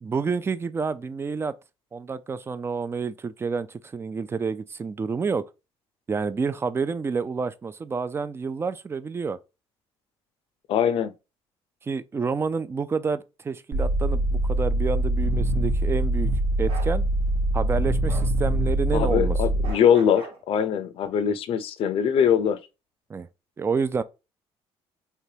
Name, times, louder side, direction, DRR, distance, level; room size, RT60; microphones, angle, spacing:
voice 1, 0.0-1.5 1.9-5.4 6.1-9.4 11.8-16.3 16.6-17.0 17.5-19.4 23.1-23.3 23.6-24.0, right 5 dB, 25° right, 0.3 m, -29 dB
voice 2, 10.7-11.1 18.9-22.6, left 8 dB, 60° left, 0.5 m, -22 dB
sound 1, 13.7-19.7, right 1 dB, 85° right, 1.1 m, -24 dB
Bark, 16.7-16.9 18.1-18.3 19.6-20.4, right 3 dB, 60° right, 1.1 m, -40 dB
3.3 x 2.9 x 2.7 m
cardioid pair, 100°, 10 cm